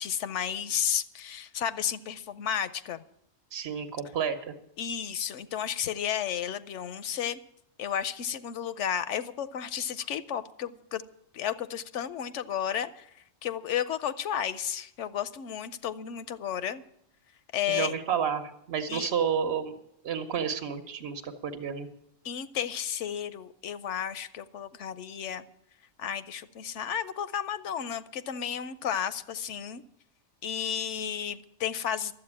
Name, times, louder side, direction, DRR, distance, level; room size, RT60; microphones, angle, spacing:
voice 1, 0.0-3.0 4.8-7.4 7.8-11.0 11.3-16.8 17.5-18.0 18.9-19.1 22.2-25.4 26.0-29.8 30.4-32.1, left 9 dB, 80° left, 14 dB, 1.0 m, -32 dB
voice 2, 3.5-4.5 17.7-19.7 20.0-21.9, right 7 dB, 60° right, 8 dB, 1.2 m, -30 dB
12.0 x 8.0 x 9.8 m, 0.76 s
omnidirectional pair, 1.2 m